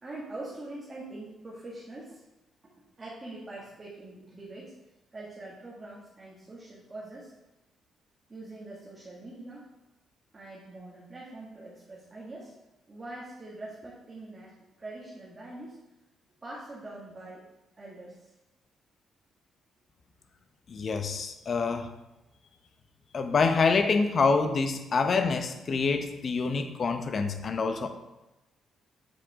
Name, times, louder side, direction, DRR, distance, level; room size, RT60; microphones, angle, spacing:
voice 1, 0.0-2.2 2.6-2.7 3.0-4.7 5.1-7.3 8.3-9.7 10.3-12.5 12.9-14.5 14.8-15.8 16.4-17.4 17.8-18.3, right 2 dB, 25° right, -6 dB, 2.0 m, -43 dB
voice 2, 20.7-21.9 23.1-27.9, left 4 dB, 45° left, 7 dB, 0.8 m, -26 dB
8.1 x 6.0 x 3.6 m, 0.98 s
cardioid pair, 90°, 0 cm